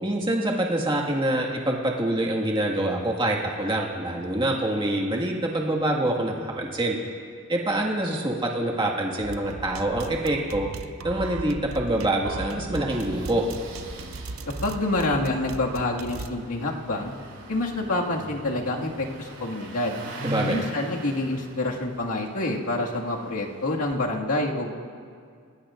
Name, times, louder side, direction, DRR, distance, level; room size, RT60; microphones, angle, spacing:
voice 1, 0.0-7.0 7.5-10.7 11.0-13.5 20.2-20.6, right 1 dB, 20° right, -2 dB, 1.8 m, -25 dB
dance Lofi Techno, 9.2-16.3, right 3 dB, 70° right, 0.7 m, -38 dB
Engine starting, 11.2-11.3 11.5-11.6 11.8-12.0 12.9-23.9, right 1 dB, 85° right, 5.4 m, -42 dB
sound 1, 11.7-19.6, equal, 50° right, 3.9 m, -46 dB
voice 2, 14.6-17.1 17.5-20.0 20.4-24.7, left 2 dB, 85° left, -2 dB, 2.0 m, -27 dB
29.5 x 19.5 x 2.6 m, 2.2 s
head